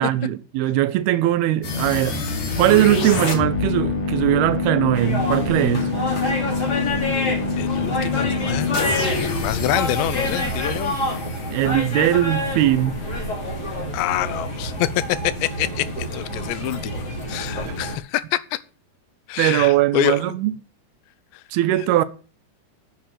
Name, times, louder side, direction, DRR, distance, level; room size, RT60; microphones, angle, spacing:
voice 1, 0.0-2.3 2.6-5.9 11.5-13.0 17.7-17.8 19.4-20.5 21.5-22.0, right 14 dB, 75° right, 2.5 m, -20 dB
sound 1, 1.6-12.6, left 4 dB, 50° left, 3.6 m, -26 dB
sound 2, 4.9-18.0, left 1 dB, 25° left, 3.1 m, -27 dB
voice 2, 7.6-11.0 13.9-18.6 19.3-20.4 21.3-21.4, left 14 dB, 90° left, 3.0 m, -26 dB
9.3 x 7.2 x 8.9 m
omnidirectional pair, 4.9 m